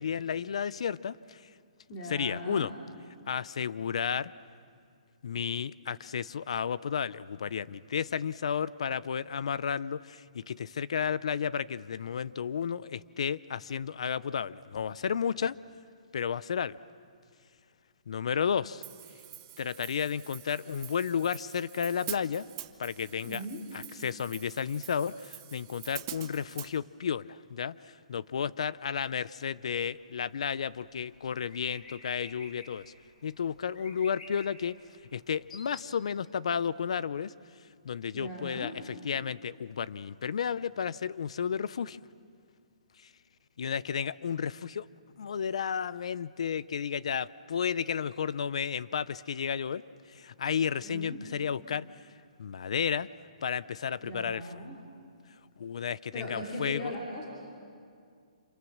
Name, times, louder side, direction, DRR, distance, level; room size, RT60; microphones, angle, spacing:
voice 1, 0.0-1.4 2.1-2.7 3.3-4.3 5.2-15.5 16.1-16.8 18.1-18.8 19.6-22.5 22.8-23.4 23.7-27.8 28.1-32.9 33.2-34.8 35.1-37.3 37.8-42.0 43.6-44.8 45.2-49.8 50.1-51.9 52.4-53.1 53.4-54.5 55.6-56.9, left 7 dB, 55° left, 19 dB, 0.6 m, -32 dB
voice 2, 1.9-2.7 23.2-23.6 38.1-38.7 50.8-51.2 54.0-54.8 56.1-57.3, equal, 20° left, -3 dB, 2.7 m, -39 dB
Hi-hat, 18.8-26.7, right 13 dB, 25° right, 0.9 m, -45 dB
sound 1, 29.9-35.8, left 3 dB, 90° left, 4.0 m, -52 dB
27.5 x 27.0 x 7.3 m, 2.3 s
hypercardioid pair, 175°, 4 cm